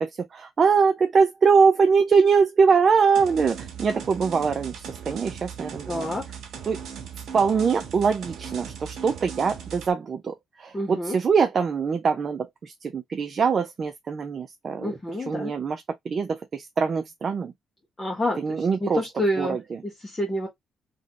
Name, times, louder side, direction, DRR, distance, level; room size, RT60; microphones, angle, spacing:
voice 1, 0.3-6.1 6.7-6.8 7.3-15.0 15.3-17.5 18.4-19.0 19.4-19.6, right 5 dB, 45° right, 0.5 m, -23 dB
sound 1, 3.1-9.9, right 7 dB, 70° right, 1.0 m, -38 dB
voice 2, 5.9-6.3 10.7-11.2 14.8-15.5 18.0-19.6 19.8-20.5, left 1 dB, 20° left, 1.2 m, -28 dB
3.1 x 2.7 x 2.8 m
cardioid pair, 90°, 0 cm